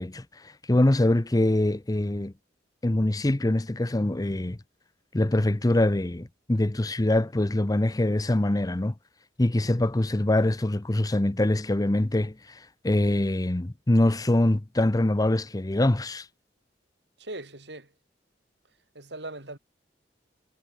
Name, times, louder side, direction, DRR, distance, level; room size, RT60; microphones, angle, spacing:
voice 1, 0.0-2.3 2.8-4.6 5.1-8.9 9.4-16.3, left 1 dB, 20° left, 0.7 m, -24 dB
voice 2, 17.2-17.9 18.9-19.6, right 2 dB, 70° right, 5.7 m, -39 dB
head